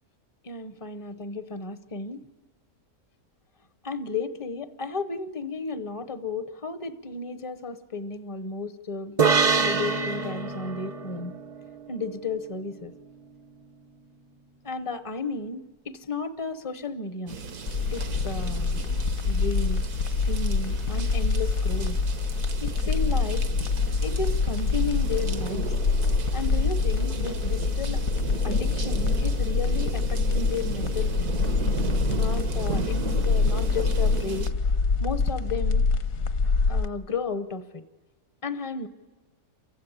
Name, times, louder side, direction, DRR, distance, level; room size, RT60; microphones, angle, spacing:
voice 1, 0.4-2.2 3.8-9.2 9.5-11.3 11.9-12.9 14.6-17.4 17.9-18.8 19.3-19.8 20.2-22.0 22.6-23.4 24.0-25.7 26.3-28.0 28.4-31.3 32.1-34.5 35.0-35.9 36.7-37.8 38.4-38.9, left 4 dB, 30° left, 12 dB, 0.6 m, -33 dB
sound 1, 9.2-12.7, right 5 dB, 35° right, 0.6 m, -26 dB
sound 2, 17.3-34.5, right 4 dB, 85° right, 1.9 m, -36 dB
sound 3, 17.7-36.9, left 4 dB, 70° left, 1.5 m, -25 dB
28.0 x 16.0 x 9.9 m, 1.3 s
omnidirectional pair, 1.6 m